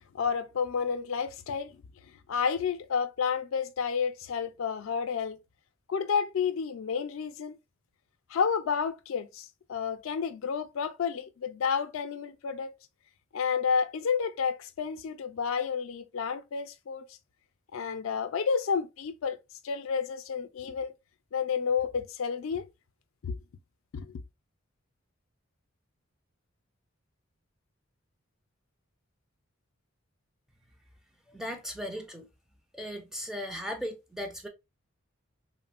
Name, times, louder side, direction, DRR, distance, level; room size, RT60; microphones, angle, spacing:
voice 1, 0.1-1.8 2.3-5.4 5.9-7.6 8.3-12.7 13.3-17.0 17.7-19.4 19.6-20.9 21.3-22.6 23.2-23.4 23.9-24.1, left 6 dB, 75° left, 0.4 m, -30 dB
voice 2, 31.3-32.3 32.7-34.5, equal, ahead, 0.3 m, -37 dB
3.0 x 2.0 x 2.4 m
head